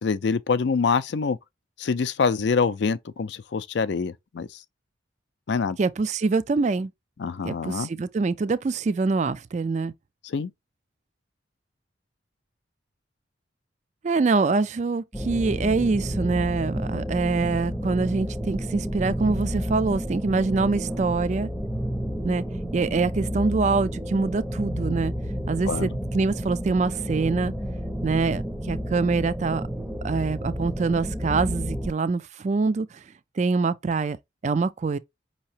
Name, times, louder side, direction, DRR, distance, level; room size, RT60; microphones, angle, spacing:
voice 1, 0.0-1.4 1.8-4.5 5.5-5.8 7.2-7.9 10.2-10.5 25.7-25.9, left 5 dB, 60° left, 0.4 m, -25 dB
voice 2, 5.8-6.9 7.4-9.9 14.0-21.5 22.2-22.4 22.7-25.1 25.5-27.5 28.0-29.7 30.0-33.0 33.4-34.2 34.4-35.0, right 4 dB, 35° right, 0.3 m, -25 dB
sound 1, 15.1-31.9, equal, 5° right, 0.6 m, -30 dB
5.5 x 2.9 x 2.7 m
head